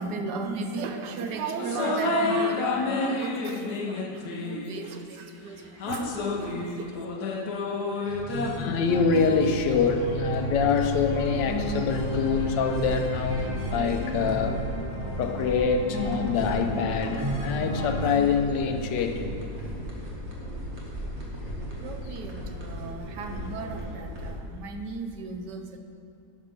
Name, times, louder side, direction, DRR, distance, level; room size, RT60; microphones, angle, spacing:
voice 1, 0.0-7.1 13.4-13.5 21.4-21.5 21.8-25.8, right 4 dB, 70° right, 6 dB, 1.3 m, -36 dB
sound 1, 1.6-5.0 5.8-8.5, left 3 dB, 65° left, 1.4 m, -29 dB
sound 2, 8.0-18.2, right 1 dB, 5° right, 2.5 m, -33 dB
voice 2, 8.6-14.6 15.2-19.3, left 5 dB, 85° left, 5 dB, 1.4 m, -25 dB
sound 3, 8.7-24.3, equal, 40° right, 1.9 m, -36 dB
11.5 x 6.6 x 5.2 m, 2.4 s
omnidirectional pair, 1.9 m